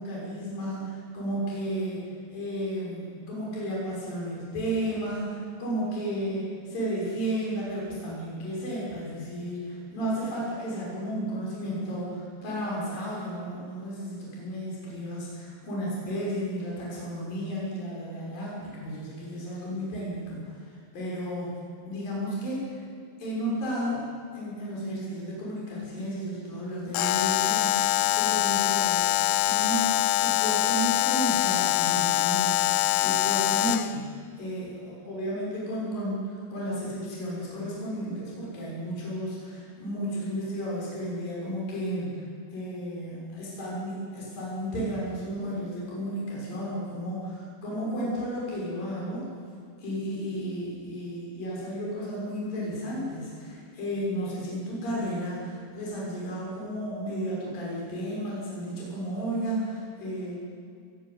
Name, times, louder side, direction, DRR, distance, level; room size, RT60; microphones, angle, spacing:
voice 1, 0.0-20.7 20.9-21.6 21.9-22.8 23.2-24.0 24.3-29.1 29.5-42.2 42.5-49.2 49.8-60.4, equal, 60° left, -5 dB, 8.1 m, -33 dB
Alarm, 26.9-34.0, left 15 dB, 80° left, 1.9 m, -24 dB
23.5 x 17.5 x 9.8 m, 2.3 s
omnidirectional pair, 4.5 m